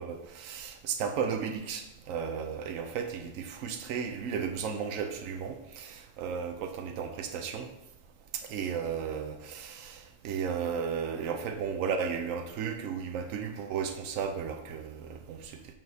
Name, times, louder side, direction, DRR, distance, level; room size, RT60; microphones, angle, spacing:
voice 1, 0.0-7.7 8.3-15.7, right 6 dB, 90° right, 5 dB, 1.0 m, -34 dB
7.3 x 6.1 x 2.7 m, 0.89 s
omnidirectional pair, 1.4 m